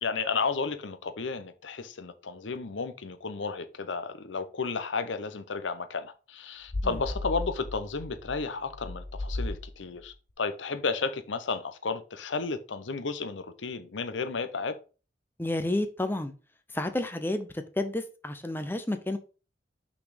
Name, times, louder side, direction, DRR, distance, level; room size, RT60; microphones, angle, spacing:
voice 1, 0.0-14.8, left 4 dB, 90° left, 0.8 m, -33 dB
sound 1, 6.7-10.1, left 1 dB, 45° left, 0.8 m, -36 dB
voice 2, 15.4-16.3 16.7-19.2, left 1 dB, 10° left, 0.7 m, -30 dB
5.9 x 4.3 x 5.1 m
head